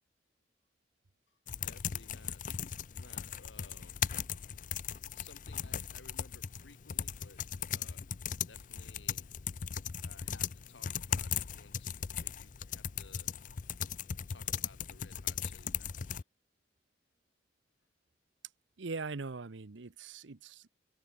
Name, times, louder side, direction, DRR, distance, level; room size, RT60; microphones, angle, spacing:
voice 1, 1.3-2.4 2.9-4.0 5.1-8.0 8.5-9.3 10.0-13.3 14.3-16.2, left 3 dB, 85° left, 3.4 m, -59 dB
sound 1, 1.5-16.2, left 8 dB, 45° left, 0.5 m, -38 dB
voice 2, 18.8-20.7, right 4 dB, 85° right, 0.9 m, -41 dB
head